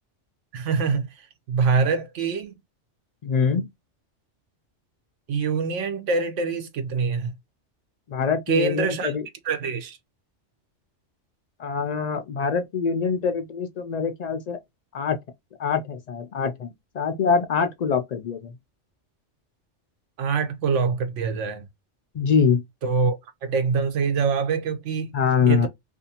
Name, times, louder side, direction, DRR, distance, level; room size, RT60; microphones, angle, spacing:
voice 1, 0.5-2.5 5.3-7.3 8.5-9.1 9.4-10.0 20.2-21.7 22.8-25.1 25.5-25.7, right 5 dB, 90° right, 1.0 m, -25 dB
voice 2, 3.2-3.7 8.1-9.3 11.6-14.6 14.9-15.2 15.6-18.5 22.1-22.6 25.1-25.7, left 6 dB, 70° left, 0.4 m, -24 dB
2.6 x 2.4 x 2.7 m
omnidirectional pair, 1.2 m